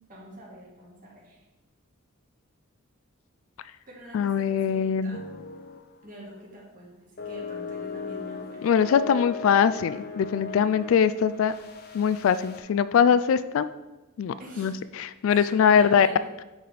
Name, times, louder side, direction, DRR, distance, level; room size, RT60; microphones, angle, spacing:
voice 1, 0.1-1.4 3.9-5.2 6.0-8.6 14.4-14.9 15.3-16.2, equal, 40° right, -4 dB, 2.0 m, -45 dB
voice 2, 4.1-5.2 8.6-11.5 11.9-13.7 14.2-16.1, left 7 dB, 65° left, 13 dB, 0.3 m, -22 dB
sound 1, 5.1-5.9 6.2-6.4 7.2-12.6, left 5 dB, 50° left, 0.7 m, -37 dB
10.0 x 4.0 x 3.4 m, 1.1 s
head